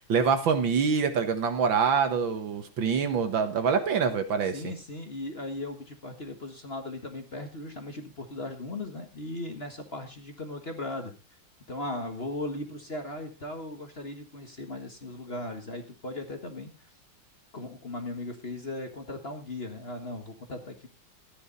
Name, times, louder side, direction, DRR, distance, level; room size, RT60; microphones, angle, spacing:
voice 1, 0.1-4.7, right 6 dB, 65° right, 8 dB, 2.1 m, -25 dB
voice 2, 4.5-11.1 11.7-16.7 17.5-20.9, left 2 dB, 30° left, 5 dB, 1.6 m, -37 dB
14.0 x 9.9 x 4.0 m, 0.29 s
omnidirectional pair, 2.3 m